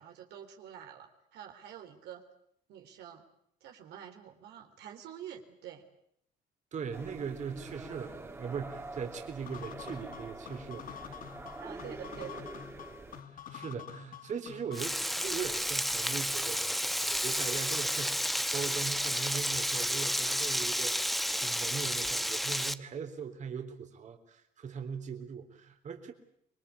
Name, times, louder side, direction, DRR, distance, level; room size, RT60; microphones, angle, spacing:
voice 1, 0.0-2.2 2.7-3.2 3.6-5.9 11.6-12.5, right 10 dB, 80° right, 4 dB, 3.6 m, -47 dB
voice 2, 6.7-11.4 13.3-26.1, right 6 dB, 45° right, 5 dB, 3.7 m, -40 dB
sound 1, 6.9-13.2, right 2 dB, 15° right, 2.8 m, -45 dB
sound 2, 9.5-15.0, left 9 dB, 55° left, 2.3 m, -47 dB
Frying (food), 14.7-22.7, equal, ahead, 1.1 m, -31 dB
26.5 x 22.0 x 8.5 m, 0.71 s
cardioid pair, 110°, 17 cm